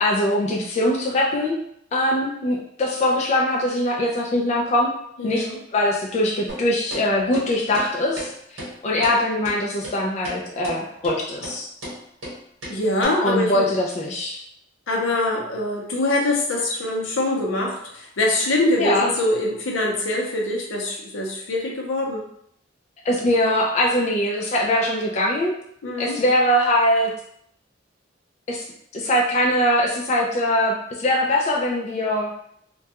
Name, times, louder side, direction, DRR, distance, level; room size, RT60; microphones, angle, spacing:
voice 1, 0.0-1.6 1.9-4.9 5.2-11.7 13.2-14.4 18.8-19.1 23.0-25.5 26.0-27.1 28.5-28.7 28.9-32.3, left 1 dB, 35° left, -2 dB, 0.3 m, -22 dB
voice 2, 5.2-5.6 12.7-13.7 14.9-22.2 25.8-26.2, left 2 dB, 85° left, -1 dB, 0.6 m, -24 dB
sound 1, 6.5-6.6 6.9-7.0 7.3-7.5 7.7-7.9 8.2-8.3 8.6-8.7 9.0-9.2 9.4-9.6 9.8-9.9 10.2-10.4 10.6-10.8 11.0-11.1 11.4-11.6 11.8-11.9 12.2-12.3 12.6-12.7 13.0-13.1, right 1 dB, 80° right, 1.0 m, -33 dB
2.2 x 2.2 x 2.8 m, 0.72 s
head